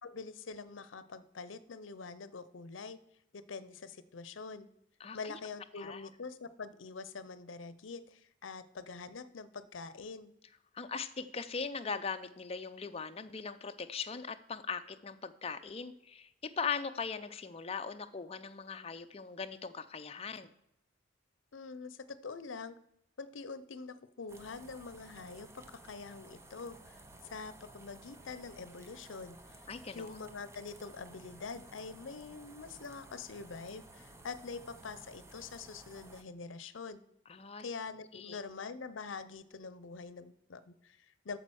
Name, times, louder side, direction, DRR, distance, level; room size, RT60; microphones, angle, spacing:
voice 1, 0.0-3.0 3.3-4.7 5.1-10.3 21.5-22.8 23.2-29.6 29.9-37.0 37.6-41.4, left 4 dB, 80° left, 15 dB, 0.7 m, -45 dB
voice 2, 5.0-5.4 5.8-6.1 10.7-16.3 16.6-20.5 29.7-30.2 37.3-37.6 38.1-38.4, left 5 dB, 30° left, 8 dB, 0.6 m, -40 dB
sound 1, 24.3-36.2, right 2 dB, 15° right, 0.7 m, -55 dB
8.6 x 6.9 x 6.3 m, 0.80 s
head